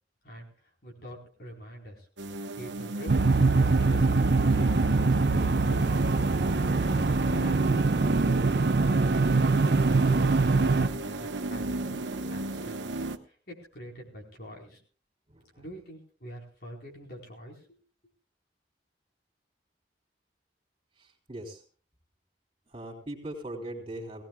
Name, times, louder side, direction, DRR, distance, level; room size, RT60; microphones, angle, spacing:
voice 1, 0.8-2.1 2.6-6.6 11.0-12.8 13.3-14.8 15.6-17.8, right 1 dB, 60° left, -1 dB, 4.4 m, -45 dB
sound 1, 2.2-13.2, right 2 dB, 85° right, 1.0 m, -34 dB
sound 2, 3.1-10.9, right 3 dB, 60° right, 0.7 m, -23 dB
voice 2, 15.3-15.6 21.0-21.6 22.7-24.2, right 1 dB, 30° right, 1 dB, 3.8 m, -40 dB
20.0 x 17.5 x 2.3 m, 0.41 s
head